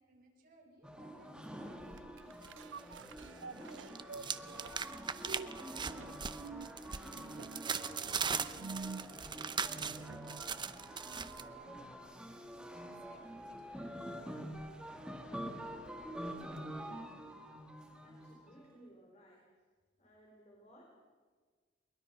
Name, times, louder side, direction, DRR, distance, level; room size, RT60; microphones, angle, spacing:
voice 1, 0.0-8.7 9.3-11.8 12.1-13.7 18.5-18.6, right 1 dB, 55° right, 0 dB, 5.3 m, -62 dB
sound 1, 0.8-18.7, equal, 5° right, 1.7 m, -47 dB
sound 2, 1.9-10.5 11.0-11.1, right 4 dB, 70° right, 0.5 m, -49 dB
sound 3, 2.4-3.3 3.6-11.4, right 6 dB, 25° right, 0.7 m, -40 dB
voice 2, 18.0-19.4 20.0-20.8, right 1 dB, 40° left, -2 dB, 4.6 m, -60 dB
22.5 x 20.5 x 6.0 m, 1.5 s
head